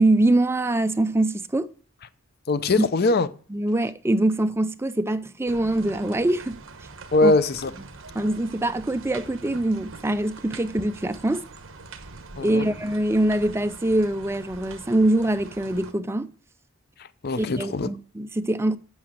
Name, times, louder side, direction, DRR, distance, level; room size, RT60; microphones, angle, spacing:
voice 1, 0.0-1.7 2.8-2.9 3.5-6.6 7.2-7.3 8.1-11.4 12.4-16.3 17.4-18.8, right 1 dB, 10° right, 0.4 m, -23 dB
voice 2, 2.5-3.3 7.1-7.7 12.4-12.7 17.2-17.9, left 2 dB, 45° left, 0.5 m, -21 dB
sound 1, 5.5-15.9, right 3 dB, 65° right, 1.0 m, -43 dB
8.7 x 6.1 x 7.5 m
head